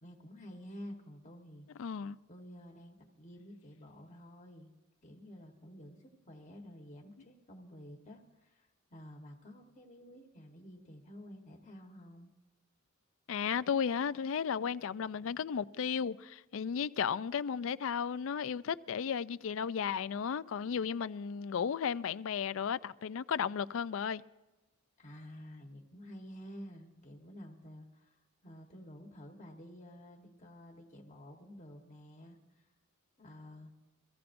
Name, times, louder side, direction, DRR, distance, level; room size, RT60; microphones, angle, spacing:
voice 1, 0.0-1.9 2.3-4.7 5.0-12.3 25.0-32.7 33.2-33.7, equal, 35° left, 1.2 m, -51 dB
voice 2, 1.8-2.2 13.3-24.2, left 7 dB, 65° left, 0.4 m, -34 dB
23.5 x 15.0 x 2.6 m
head